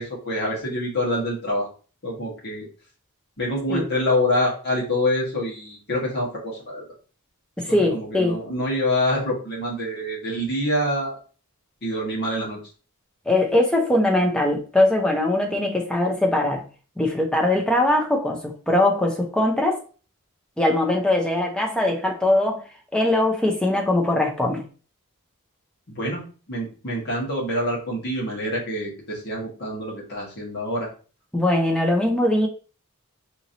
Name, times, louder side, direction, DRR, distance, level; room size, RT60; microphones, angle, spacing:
voice 1, 0.0-1.7 2.0-2.7 3.4-6.8 7.9-11.2 11.8-12.6 25.9-30.9, left 1 dB, 45° left, -4 dB, 1.5 m, -26 dB
voice 2, 7.6-8.4 13.3-16.7 17.0-19.8 20.6-22.6 22.9-24.6 31.3-32.5, left 1 dB, 5° left, 1 dB, 0.6 m, -21 dB
4.5 x 3.0 x 2.7 m, 0.38 s
head